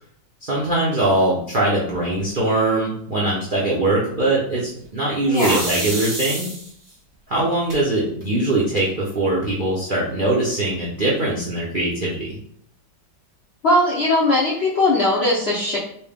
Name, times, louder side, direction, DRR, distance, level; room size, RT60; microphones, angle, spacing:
voice 1, 0.4-6.5 7.3-12.4, right 2 dB, 75° right, -6 dB, 0.4 m, -21 dB
voice 2, 5.3-5.6 13.6-15.8, left 1 dB, 90° left, -4 dB, 0.5 m, -19 dB
sound 1, 5.3-6.9 7.7-7.8 8.2-8.3 8.6-9.2, right 1 dB, 35° right, 1.3 m, -29 dB
4.2 x 2.2 x 3.5 m, 0.65 s
omnidirectional pair, 2.0 m